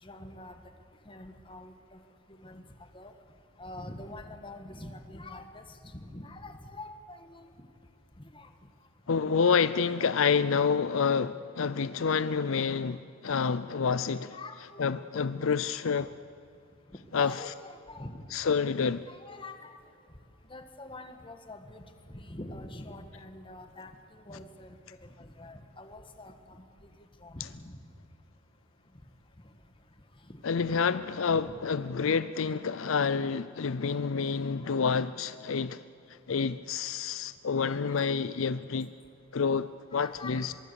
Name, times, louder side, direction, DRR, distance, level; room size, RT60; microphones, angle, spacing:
voice 1, 0.0-0.5 1.0-2.0 2.4-2.6 2.9-3.1 3.6-7.7 8.2-8.5 14.3-15.0 15.9-16.1 16.9-18.2 19.1-19.7 20.5-21.8 22.1-26.6 27.2-27.8 30.6-30.8 31.3-31.6 34.6-35.0 39.9-40.5, left 2 dB, 25° left, 1.6 m, -45 dB
voice 2, 9.1-14.3 14.8-16.1 17.1-17.3 18.3-19.1 30.4-35.8 36.1-38.9 39.3-40.5, left 5 dB, 70° left, 0.5 m, -28 dB
24.5 x 22.5 x 7.1 m
head